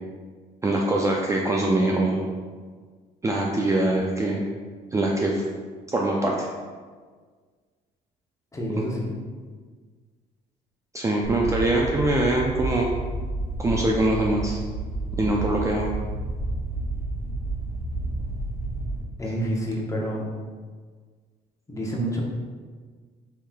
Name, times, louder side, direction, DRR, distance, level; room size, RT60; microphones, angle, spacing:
voice 1, 0.6-2.3 3.2-4.4 4.9-5.4 5.9-6.5 8.8-8.9 10.9-12.9 13.6-14.6 15.2-15.9, right 2 dB, 20° right, -1 dB, 0.4 m, -23 dB
voice 2, 8.5-9.1 19.2-20.3 21.7-22.2, equal, 20° left, -2 dB, 0.8 m, -28 dB
sound 1, 11.2-19.0, right 2 dB, 75° right, 1.4 m, -30 dB
5.5 x 3.1 x 2.3 m, 1.5 s
cardioid pair, 110°, 17 cm